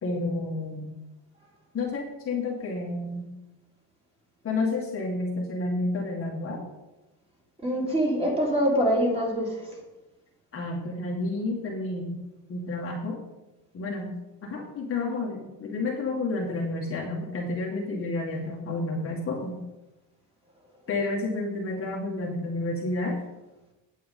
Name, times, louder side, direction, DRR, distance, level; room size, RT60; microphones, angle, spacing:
voice 1, 0.0-0.9 1.7-3.2 4.4-6.6 10.5-12.2 12.5-13.2 13.7-14.1 14.4-19.6 20.9-23.2, left 2 dB, 30° left, -2 dB, 1.9 m, -30 dB
voice 2, 7.6-9.7, equal, 10° right, -2 dB, 3.3 m, -24 dB
9.8 x 8.4 x 5.4 m, 1.0 s
cardioid pair, 145°, 45 cm